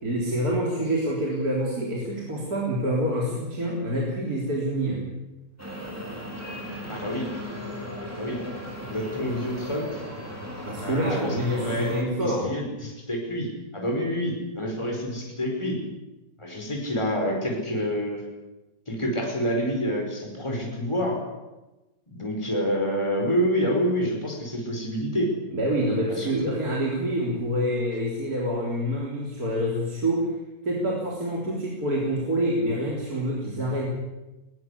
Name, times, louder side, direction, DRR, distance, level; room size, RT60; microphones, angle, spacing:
voice 1, 0.0-5.0 10.7-12.5 25.5-30.3 30.6-33.9, equal, 60° right, -3 dB, 4.2 m, -27 dB
sound 1, 5.6-12.0, equal, 10° right, 5.5 m, -37 dB
voice 2, 6.9-7.3 8.1-8.4 8.9-10.0 10.8-11.9 12.2-13.5 13.7-15.8 16.4-18.2 18.9-21.2 22.1-25.3 26.1-26.5, equal, 15° left, 1 dB, 5.2 m, -28 dB
21.0 x 19.0 x 8.4 m, 1.0 s
omnidirectional pair, 1.8 m